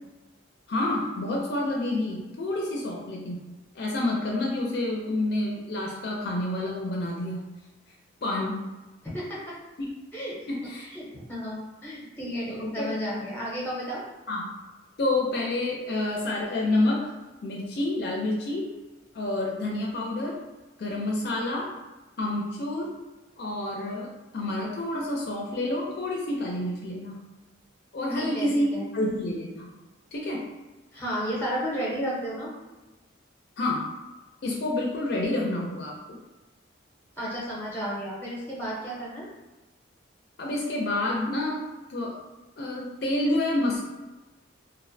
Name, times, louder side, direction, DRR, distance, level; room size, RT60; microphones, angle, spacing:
voice 1, 0.7-3.5 3.7-7.5 8.2-8.6 10.5-10.9 12.5-13.0 14.3-14.5 15.0-17.1 17.4-18.7 19.1-20.4 20.8-21.7 22.2-22.9 23.4-27.2 27.9-29.7 30.1-30.5 33.6-33.9 34.4-36.2 40.4-41.6 41.9-42.2 42.6-43.9, left 1 dB, 55° left, -1 dB, 0.4 m, -28 dB
voice 2, 9.0-9.5 10.1-10.4 10.9-14.0 28.1-28.9 30.9-32.5 37.2-39.3, equal, 10° left, -6 dB, 0.6 m, -32 dB
2.5 x 2.0 x 2.5 m, 1.1 s
head